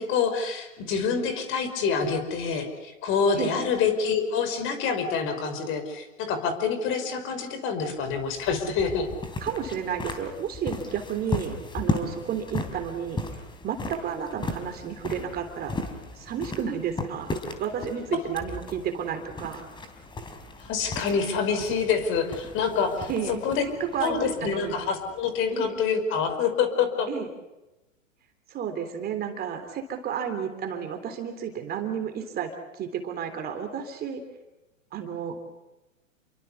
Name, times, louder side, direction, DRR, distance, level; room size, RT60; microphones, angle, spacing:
voice 1, 0.0-9.1 20.6-23.6 24.0-27.1, left 6 dB, 30° left, 9 dB, 5.3 m, -26 dB
sound 1, 8.0-25.7, left 2 dB, 10° left, 3.5 m, -36 dB
voice 2, 9.4-13.2 13.6-15.8 16.2-17.3 17.6-19.6 23.1-23.4 23.9-24.8 25.5-25.7 27.1-27.3 28.5-34.2 34.9-35.4, right 8 dB, 25° right, 6 dB, 3.3 m, -32 dB
29.0 x 23.5 x 7.1 m, 1.0 s
hypercardioid pair, 125°, 39 cm